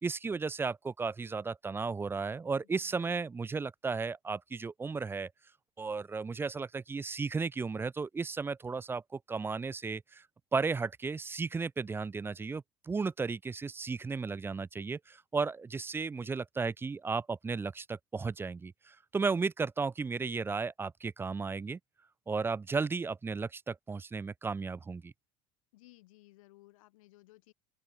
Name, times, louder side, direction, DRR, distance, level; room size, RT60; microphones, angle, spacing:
voice 1, 0.0-5.3 5.8-10.2 10.5-21.8 22.3-25.1, right 4 dB, 15° right, 0.5 m, -34 dB
voice 2, 2.6-3.2 25.7-27.5, left 19 dB, 85° left, 2.4 m, -59 dB
open air
supercardioid pair, 110°, 17 cm